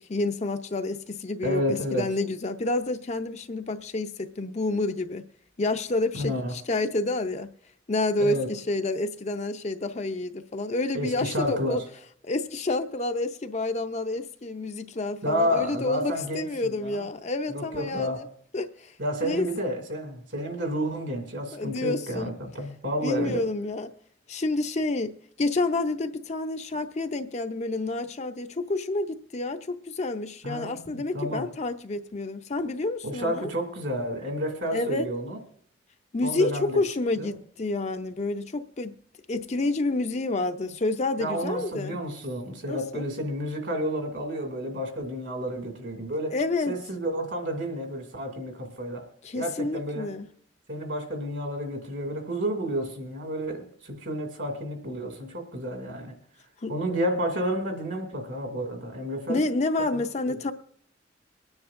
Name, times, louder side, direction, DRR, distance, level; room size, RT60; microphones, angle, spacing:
voice 1, 0.1-5.2 5.6-7.5 7.9-11.8 12.2-18.3 18.5-18.9 19.2-19.5 21.5-22.3 23.0-23.9 24.3-33.5 34.7-35.1 36.1-38.9 39.3-42.0 42.6-43.1 46.3-46.7 49.2-50.3 56.6-56.7 59.3-60.5, left 2 dB, 35° left, 0.6 m, -29 dB
voice 2, 1.4-2.0 6.1-6.5 8.2-8.5 10.9-11.8 15.2-17.1 17.5-18.2 19.0-23.4 30.4-31.5 33.0-35.4 36.2-36.8 37.2-37.3 40.6-40.7 41.2-46.3 46.7-49.0 49.3-50.1 50.7-56.2 56.7-59.4 59.9-60.0 60.3-60.4, equal, 65° right, 2.4 m, -30 dB
23.5 x 9.7 x 2.5 m
head